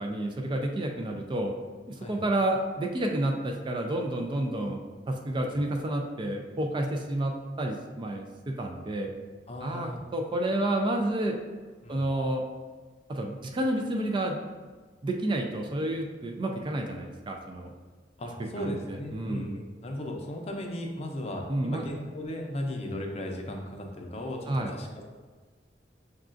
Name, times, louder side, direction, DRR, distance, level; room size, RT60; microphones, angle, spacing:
voice 1, 0.0-1.5 1.9-4.8 5.1-9.1 9.6-11.4 11.9-12.4 13.1-14.4 15.0-17.7 18.6-19.5 21.5-21.8 24.5-24.7, right 1 dB, 25° right, 3 dB, 0.3 m, -30 dB
voice 2, 9.5-10.0 11.8-12.0 18.2-25.0, left 1 dB, 35° left, 1 dB, 0.5 m, -36 dB
6.5 x 2.4 x 2.5 m, 1.4 s
head